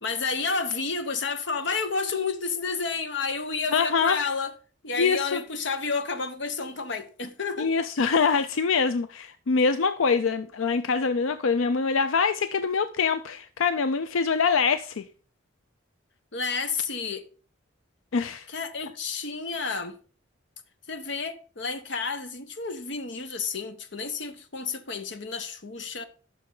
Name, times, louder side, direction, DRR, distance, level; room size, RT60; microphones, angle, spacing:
voice 1, 0.0-4.5 4.8-7.7 16.3-17.3 18.5-20.0 20.9-26.0, left 4 dB, 65° left, 1.0 m, -30 dB
voice 2, 3.7-4.2 5.0-5.4 7.6-15.0 18.1-18.5, left 5 dB, 85° left, 0.5 m, -24 dB
14.0 x 6.3 x 3.8 m
head